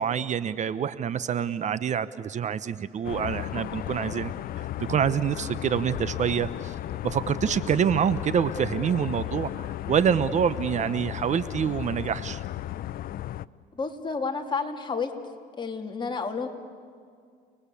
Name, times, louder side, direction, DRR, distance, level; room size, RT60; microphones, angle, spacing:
voice 1, 0.0-4.3 4.9-6.7 7.0-12.4, right 8 dB, 45° right, 15 dB, 0.9 m, -26 dB
sound 1, 3.0-13.5, left 13 dB, 60° left, 0.6 m, -35 dB
voice 2, 13.7-15.1 15.6-16.5, left 5 dB, 25° left, 3 dB, 3.0 m, -30 dB
30.0 x 21.0 x 8.5 m, 2.2 s
cardioid pair, 110°, 17 cm